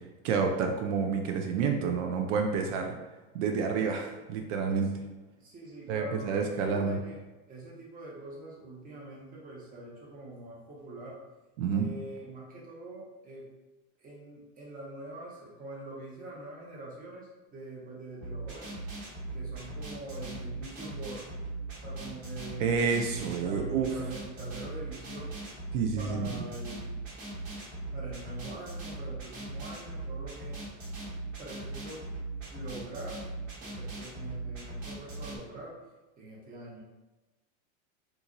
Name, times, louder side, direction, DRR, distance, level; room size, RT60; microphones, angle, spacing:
voice 1, 0.2-3.0 3.3-4.9 5.9-7.0 11.6-11.9 22.6-23.9 25.7-26.4, right 5 dB, 75° right, 3 dB, 0.5 m, -29 dB
voice 2, 5.4-7.2 7.5-11.2 11.7-13.5 14.0-18.8 19.3-21.3 21.8-25.4 26.0-27.0 27.9-30.6 31.4-32.0 32.5-33.2 33.6-35.8 36.2-36.8, right 2 dB, 20° right, -4 dB, 0.8 m, -44 dB
sound 1, 18.2-35.4, right 2 dB, 60° right, 1.2 m, -39 dB
2.9 x 2.4 x 2.5 m, 1.1 s
supercardioid pair, 135°, 38 cm